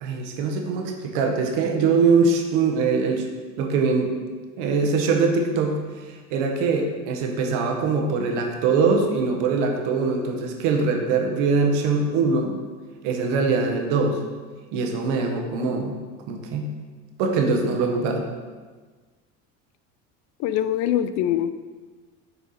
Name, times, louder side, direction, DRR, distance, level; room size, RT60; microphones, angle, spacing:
voice 1, 0.0-3.2 3.6-4.1 4.6-5.8 6.1-12.5 13.0-14.2 14.7-15.9 16.3-16.7 17.2-18.3, right 4 dB, 80° right, 3 dB, 1.1 m, -22 dB
voice 2, 20.4-21.5, left 11 dB, 65° left, 11 dB, 0.5 m, -23 dB
6.8 x 4.5 x 4.1 m, 1.4 s
cardioid pair, 120°, 31 cm